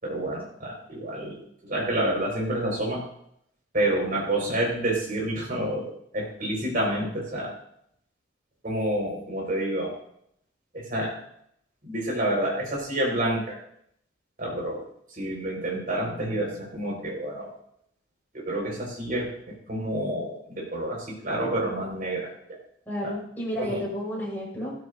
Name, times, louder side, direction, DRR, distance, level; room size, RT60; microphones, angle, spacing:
voice 1, 0.0-3.0 3.7-7.5 8.6-9.9 10.7-11.2 11.8-13.6 14.4-14.8 15.1-17.5 18.3-22.3 23.0-23.1 23.6-23.8, right 1 dB, 50° right, -1 dB, 5.2 m, -29 dB
voice 2, 22.9-24.7, equal, 10° left, -5 dB, 5.9 m, -32 dB
15.5 x 13.5 x 2.7 m, 0.70 s
head